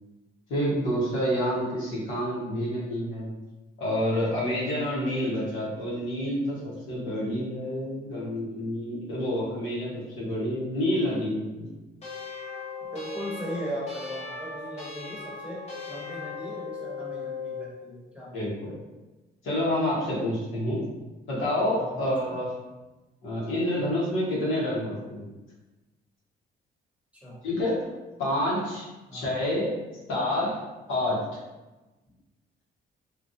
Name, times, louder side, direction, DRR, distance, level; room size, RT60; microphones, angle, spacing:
voice 1, 0.5-3.3 3.8-11.7 18.3-18.7 19.4-20.8 21.3-22.5 23.2-25.3 27.4-27.8 28.2-29.7 30.1-30.6 30.9-31.2, left 1 dB, 85° left, -6 dB, 1.2 m, -28 dB
sound 1, 12.0-17.7, left 5 dB, 35° left, 1.0 m, -38 dB
voice 2, 12.9-18.3 21.8-22.4 27.1-27.4 29.1-29.3, right 1 dB, 5° right, -6 dB, 0.9 m, -38 dB
2.9 x 2.5 x 2.6 m, 1.1 s
cardioid pair, 90°, 20 cm